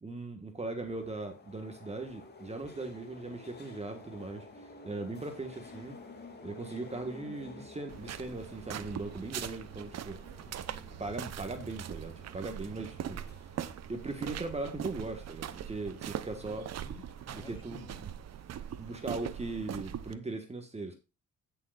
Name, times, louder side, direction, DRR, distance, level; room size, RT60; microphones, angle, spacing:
voice 1, 0.0-6.0 6.4-10.2 11.0-13.2 13.9-16.7 17.3-18.1 18.8-20.9, right 2 dB, 20° right, 1.7 m, -39 dB
sound 1, 0.8-19.9, left 3 dB, 35° left, 2.5 m, -53 dB
sound 2, 7.9-20.1, right 10 dB, 60° right, 0.9 m, -41 dB
voice 2, 10.4-11.0 12.7-13.8 16.4-18.1, left 3 dB, 15° left, 2.4 m, -54 dB
16.0 x 6.8 x 2.5 m
cardioid pair, 90°, 30 cm